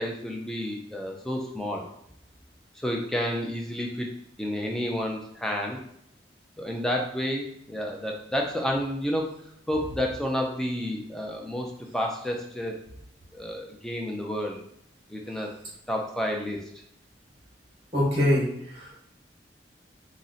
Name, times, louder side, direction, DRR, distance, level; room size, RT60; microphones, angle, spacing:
voice 1, 0.0-1.9 2.7-4.1 4.4-5.8 6.6-9.3 9.7-12.8 13.3-14.6 15.1-15.5 15.9-16.6, equal, 5° left, 0 dB, 0.4 m, -30 dB
voice 2, 17.9-18.4 18.7-19.0, left 1 dB, 30° right, -5 dB, 0.8 m, -23 dB
2.5 x 2.1 x 3.8 m, 0.72 s
head